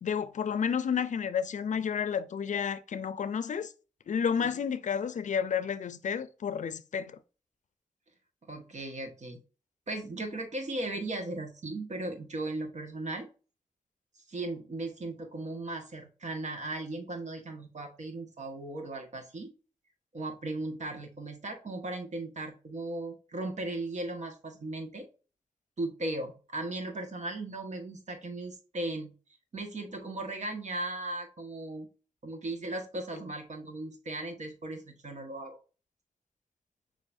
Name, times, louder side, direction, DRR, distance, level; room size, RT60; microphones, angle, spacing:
voice 1, 0.0-3.7 4.1-7.2, left 7 dB, 65° left, 0.4 m, -31 dB
voice 2, 8.4-9.4 9.9-13.3 14.3-19.5 20.1-25.1 25.8-29.1 29.5-31.9 32.2-35.6, right 2 dB, 60° right, 1.4 m, -37 dB
6.8 x 3.0 x 2.6 m
cardioid pair, 50°, 13 cm